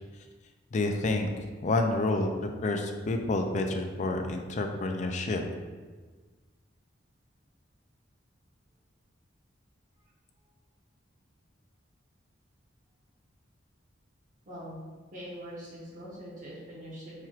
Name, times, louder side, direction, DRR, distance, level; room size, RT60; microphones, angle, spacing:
voice 1, 0.7-1.3 1.6-5.4, left 2 dB, 40° left, 4 dB, 0.4 m, -29 dB
voice 2, 14.4-14.8 15.1-17.3, equal, 40° right, -6 dB, 1.1 m, -43 dB
4.5 x 4.4 x 2.4 m, 1.4 s
head